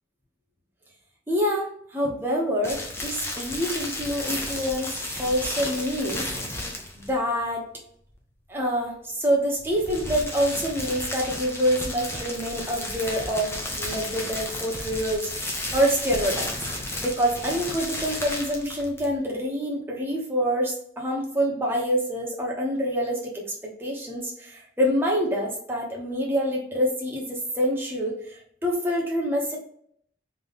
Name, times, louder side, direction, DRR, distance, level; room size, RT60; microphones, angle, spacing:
voice 1, 1.3-6.3 6.9-7.7 8.5-16.5 17.0-29.6, equal, 10° right, -2 dB, 0.9 m, -26 dB
sound 1, 2.6-7.1 9.6-19.2, left 1 dB, 15° left, 0.6 m, -33 dB
3.8 x 3.0 x 3.4 m, 0.66 s
head